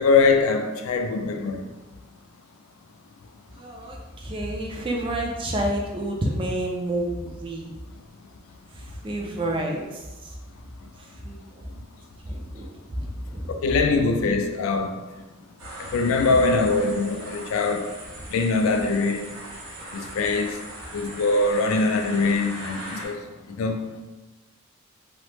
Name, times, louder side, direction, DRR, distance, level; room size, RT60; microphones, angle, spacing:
voice 1, 0.0-1.6 13.5-14.9 15.8-17.9 18.3-19.2 19.9-20.6 20.9-23.2 23.6-23.8, left 3 dB, 75° left, 0.3 m, -22 dB
voice 2, 3.6-7.7 8.7-10.0 11.2-11.6 12.2-12.6 13.0-13.5, right 1 dB, 25° right, 0.3 m, -29 dB
sound 1, 15.6-23.1, right 1 dB, 80° right, 0.9 m, -39 dB
3.2 x 2.0 x 2.9 m
head